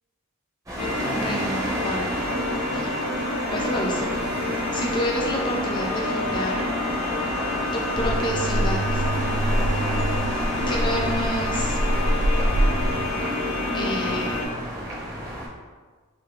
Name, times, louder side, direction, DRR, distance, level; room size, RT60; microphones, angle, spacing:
sound 1, 0.7-15.5, equal, 15° right, 0.6 m, -32 dB
sound 2, 0.8-14.5, left 2 dB, 75° left, 0.7 m, -28 dB
voice 1, 0.8-2.2 2.7-2.9 3.5-4.2 4.7-6.6 8.0-9.0 10.7-11.8 13.7-14.4, equal, 20° left, -1 dB, 0.4 m, -29 dB
sound 3, 7.9-13.1, right 1 dB, 60° right, 0.4 m, -25 dB
3.1 x 2.2 x 3.2 m, 1.4 s
head